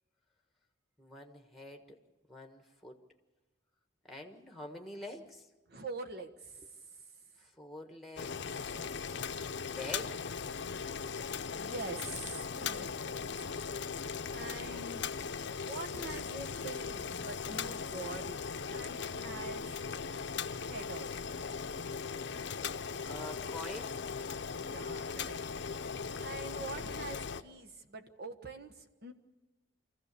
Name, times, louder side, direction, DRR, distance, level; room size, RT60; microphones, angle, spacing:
voice 1, 1.0-2.0 2.3-3.0 4.0-5.5 7.4-10.2 14.7-14.9 23.0-24.0, left 2 dB, ahead, 4 dB, 1.5 m, -47 dB
voice 2, 5.7-6.6 11.4-13.6 14.3-15.0 15.7-18.4 18.7-19.8 20.6-21.2 24.5-25.4 26.2-29.1, right 3 dB, 60° right, 6 dB, 1.3 m, -44 dB
Boiling, 8.2-27.4, left 6 dB, 65° left, 0.7 m, -39 dB
25.0 x 15.0 x 6.8 m, 1.2 s
head